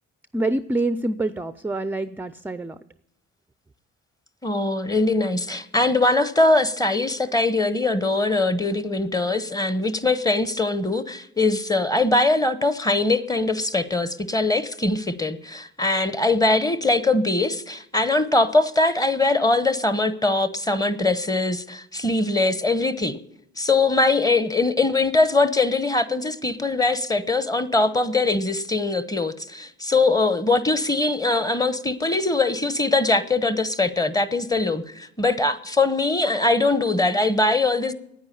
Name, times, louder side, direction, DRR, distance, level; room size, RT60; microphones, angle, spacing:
voice 1, 0.3-2.8, right 2 dB, 5° right, 0.4 m, -26 dB
voice 2, 4.4-23.2 23.6-37.9, left 2 dB, 10° left, 0.9 m, -22 dB
9.7 x 9.0 x 10.0 m
cardioid pair, 90°, 30 cm